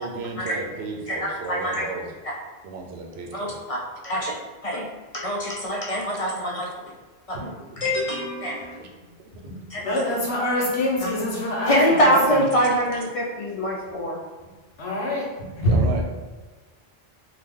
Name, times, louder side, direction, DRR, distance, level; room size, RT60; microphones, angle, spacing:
voice 1, 0.0-2.1 2.6-3.5 6.6-6.9 7.4-7.5 8.8-9.6 12.5-12.7 15.6-16.0, right 4 dB, 80° right, 1 dB, 0.8 m, -34 dB
voice 2, 1.5-1.8 3.3-3.8 4.0-4.3 4.6-4.9 5.1-6.6 7.3-7.5 7.8-8.7 9.7-10.0 11.0-11.1 11.7-14.2, equal, 55° left, -3 dB, 0.4 m, -24 dB
voice 3, 9.8-12.4 14.8-15.8, left 1 dB, 85° left, -2 dB, 1.1 m, -25 dB
2.8 x 2.3 x 3.5 m, 1.3 s
omnidirectional pair, 1.1 m